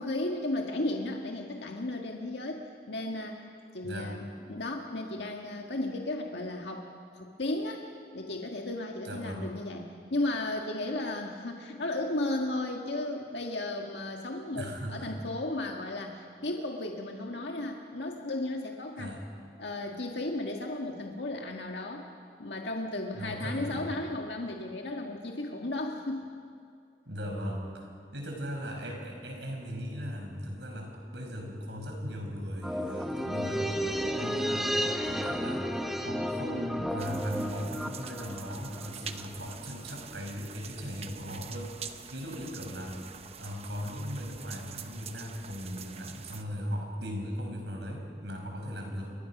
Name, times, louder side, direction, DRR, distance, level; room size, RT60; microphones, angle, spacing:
voice 1, 0.0-2.6 2.9-3.4 3.7-7.8 8.1-19.1 19.6-22.1 22.4-26.3, left 2 dB, 85° left, 1 dB, 1.7 m, -34 dB
voice 2, 3.8-4.1 9.0-9.4 14.5-15.2 19.0-19.2 23.1-23.9 27.1-33.8 34.2-43.0 43.4-49.1, equal, 85° right, 1 dB, 5.7 m, -38 dB
sound 1, 32.6-39.2 39.5-39.6, equal, ahead, 1.0 m, -32 dB
sound 2, 37.0-46.4, right 6 dB, 35° right, 0.9 m, -46 dB
29.5 x 23.5 x 6.1 m, 2.3 s
head